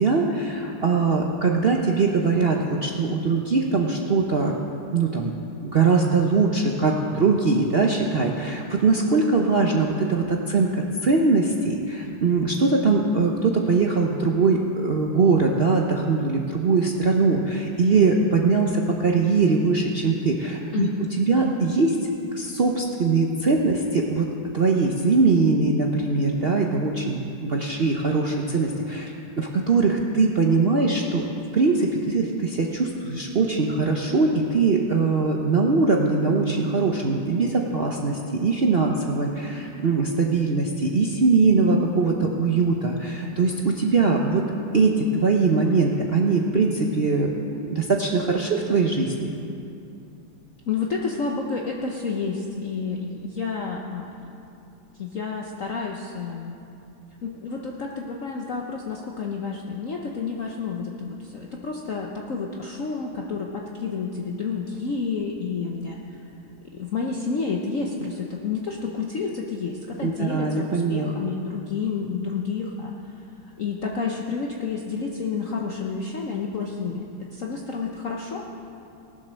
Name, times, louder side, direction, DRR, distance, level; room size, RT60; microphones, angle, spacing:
voice 1, 0.0-4.5 4.9-5.3 5.6-20.9 21.2-22.0 22.3-24.3 24.5-31.2 31.5-44.4 44.7-49.3 70.0-71.1, right 4 dB, 70° right, 0 dB, 0.5 m, -21 dB
voice 2, 20.7-21.2 50.7-54.5 54.9-56.6 57.2-66.2 66.7-73.1 73.6-78.4, left 5 dB, 55° left, 0 dB, 1.0 m, -30 dB
18.5 x 7.6 x 6.3 m, 2.6 s
omnidirectional pair, 2.2 m